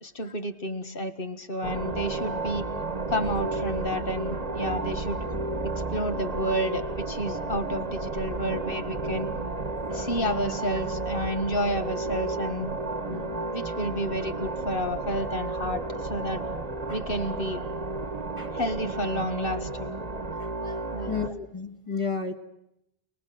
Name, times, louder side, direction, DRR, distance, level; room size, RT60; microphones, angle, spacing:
voice 1, 0.0-2.7 3.1-5.2 5.6-9.3 9.9-12.7 13.1-16.4 16.9-17.6 18.5-19.9 20.9-21.1, equal, 60° left, 8 dB, 1.9 m, -31 dB
sound 1, 1.6-21.3, right 3 dB, 40° right, 1.5 m, -32 dB
voice 2, 21.0-22.3, left 5 dB, 30° left, 3 dB, 1.9 m, -32 dB
29.5 x 19.5 x 7.8 m, 0.85 s
omnidirectional pair, 1.1 m